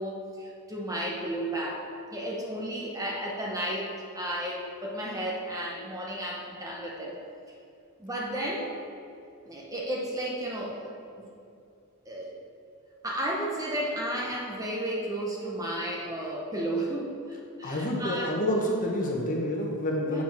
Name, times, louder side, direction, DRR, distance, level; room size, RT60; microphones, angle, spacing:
voice 1, 0.0-7.1 8.0-8.7 9.5-11.3 12.1-12.3 13.0-18.3 20.1-20.2, right 1 dB, 15° right, -2 dB, 0.9 m, -33 dB
voice 2, 17.6-20.2, left 1 dB, 35° left, -1 dB, 1.1 m, -28 dB
7.1 x 5.0 x 6.0 m, 2.5 s
head